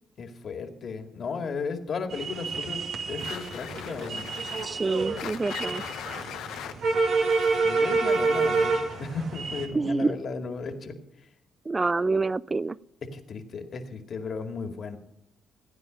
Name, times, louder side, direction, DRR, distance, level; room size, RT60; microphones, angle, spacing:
voice 1, 0.2-4.3 7.6-11.0 13.0-15.0, left 4 dB, 50° left, 6 dB, 2.2 m, -35 dB
sound 1, 2.1-9.7, right 4 dB, 65° right, 2.3 m, -28 dB
sound 2, 3.2-8.8, left 10 dB, 85° left, 1.0 m, -41 dB
voice 2, 4.6-5.8 9.7-10.2 11.7-12.8, right 3 dB, 25° right, 21 dB, 0.4 m, -27 dB
16.5 x 9.5 x 5.2 m, 0.80 s
cardioid pair, 90°, 0 cm